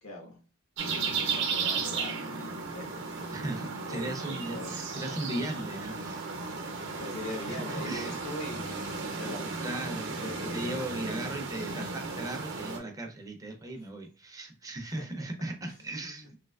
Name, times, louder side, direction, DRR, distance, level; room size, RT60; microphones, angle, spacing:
voice 1, 0.0-0.4 1.1-3.5 3.9-4.8 5.1-5.2 6.1-9.5 10.2-11.0 15.0-15.1 16.0-16.3, left 1 dB, 85° left, 1 dB, 1.0 m, -42 dB
sound 1, 0.8-12.8, right 4 dB, 60° right, 0.6 m, -35 dB
voice 2, 3.3-6.3 7.3-8.2 8.9-9.2 9.6-16.3, right 1 dB, 15° right, 4 dB, 0.5 m, -37 dB
3.2 x 2.8 x 2.3 m, 0.35 s
head